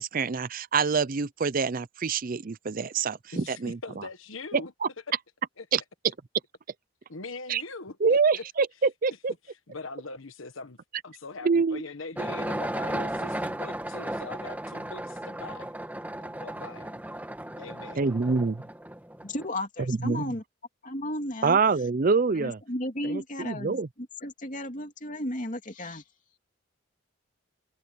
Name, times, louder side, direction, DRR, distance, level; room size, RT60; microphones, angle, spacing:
voice 1, 0.0-3.8 5.7-5.8 7.5-7.6 8.0-8.7 9.0-9.3 11.4-11.8 18.0-18.6 19.9-20.3 21.4-22.6 23.1-23.9, right 5 dB, 40° right, 0.5 m, -25 dB
voice 2, 3.3-4.7 5.6-5.7 7.1-8.4 9.4-10.8 11.0-15.7 16.2-17.0 17.6-18.2, left 3 dB, 70° left, 1.3 m, -42 dB
sound 1, 12.2-19.5, right 1 dB, 10° right, 1.4 m, -35 dB
voice 3, 19.2-20.4 20.8-21.6 22.3-26.0, left 1 dB, 40° left, 2.9 m, -34 dB
head